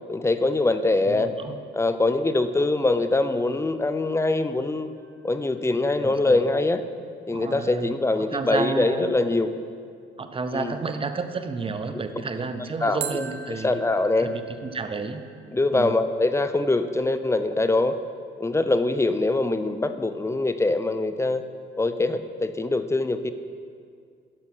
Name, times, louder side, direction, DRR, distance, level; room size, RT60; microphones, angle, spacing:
voice 1, 0.1-1.3 1.7-4.9 5.2-6.8 7.3-9.5 10.5-10.7 12.8-13.3 13.6-14.3 15.5-18.0 18.4-21.4 21.8-23.3, left 2 dB, 15° left, 11 dB, 0.5 m, -23 dB
voice 2, 1.1-1.6 6.0-6.4 7.3-7.9 8.3-9.1 10.2-13.8 14.2-15.2 15.7-16.0, right 4 dB, 25° right, 8 dB, 0.7 m, -31 dB
sound 1, 5.0-6.0 13.0-16.0, right 8 dB, 85° right, 0.7 m, -41 dB
10.5 x 6.3 x 5.5 m, 2.2 s
cardioid pair, 90°, 20 cm